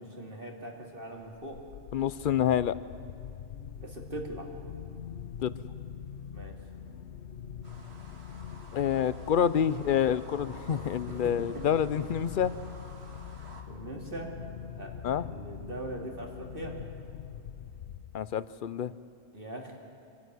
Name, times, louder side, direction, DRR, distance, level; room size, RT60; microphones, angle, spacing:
voice 1, 0.0-1.6 3.8-4.5 6.3-6.6 10.7-11.7 13.7-14.3 14.7-16.8 19.3-19.8, right 1 dB, 50° right, 1 dB, 2.7 m, -41 dB
sound 1, 1.2-18.6, left 8 dB, 80° left, 1.0 m, -43 dB
voice 2, 1.9-2.8 5.4-5.5 8.7-12.5 15.0-15.3 18.1-18.9, left 9 dB, 55° left, 16 dB, 0.7 m, -27 dB
sound 2, 7.6-13.6, right 2 dB, 70° right, 2.1 m, -52 dB
25.0 x 12.5 x 9.6 m, 2.6 s
omnidirectional pair, 1.1 m